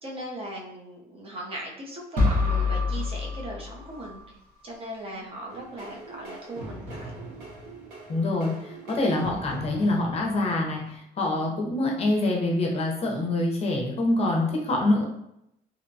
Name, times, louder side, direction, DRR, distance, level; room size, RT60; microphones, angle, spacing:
voice 1, 0.0-4.4 4.6-7.2, right 1 dB, 35° right, -2 dB, 0.7 m, -38 dB
sound 1, 2.2-4.2, left 3 dB, 55° right, 1.0 m, -26 dB
sound 2, 5.5-10.9, right 2 dB, 85° right, 0.9 m, -42 dB
voice 2, 8.1-15.0, left 2 dB, 35° left, 0 dB, 0.6 m, -25 dB
2.7 x 2.1 x 2.6 m, 0.80 s
cardioid pair, 110°, 17 cm